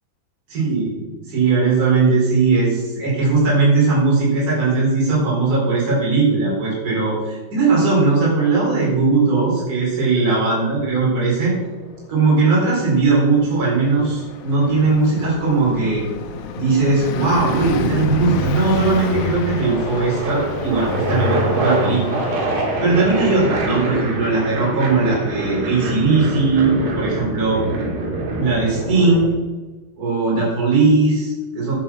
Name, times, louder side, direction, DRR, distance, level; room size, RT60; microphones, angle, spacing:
voice 1, 0.5-11.5 12.1-16.0 16.5-22.1 22.8-27.6 28.4-29.3 30.0-31.7, right 3 dB, 20° right, -6 dB, 4.5 m, -18 dB
sound 1, 11.4-12.5 14.3-15.6 16.6-17.0 17.3-29.3, right 2 dB, 75° right, 3.8 m, -26 dB
Car passing by, 12.9-23.9, left 4 dB, 75° left, 2.3 m, -29 dB
11.0 x 7.2 x 5.9 m, 1.2 s
omnidirectional pair, 4.9 m